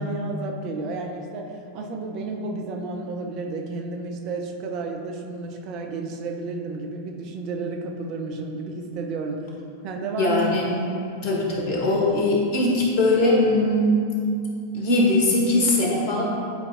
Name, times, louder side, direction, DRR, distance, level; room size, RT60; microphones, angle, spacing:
voice 1, 0.0-9.4 9.8-10.4, right 3 dB, 40° right, 2 dB, 0.7 m, -32 dB
voice 2, 10.2-10.7 11.0-14.1 14.7-16.2, left 1 dB, 50° left, -2 dB, 1.5 m, -21 dB
10.5 x 4.7 x 2.5 m, 2.4 s
figure-of-eight pair, 90°, 0 cm